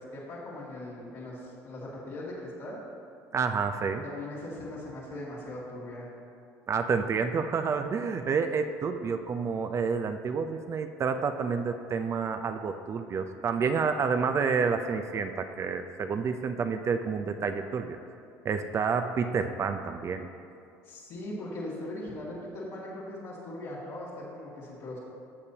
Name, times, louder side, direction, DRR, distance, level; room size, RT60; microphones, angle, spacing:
voice 1, 0.0-2.8 4.0-6.1 20.8-25.0, left 1 dB, 65° left, -9 dB, 2.4 m, -40 dB
voice 2, 3.3-4.0 6.7-18.0 18.4-20.3, right 5 dB, 40° right, 7 dB, 0.6 m, -29 dB
15.5 x 6.7 x 2.9 m, 2.4 s
supercardioid pair, 85°, 7 cm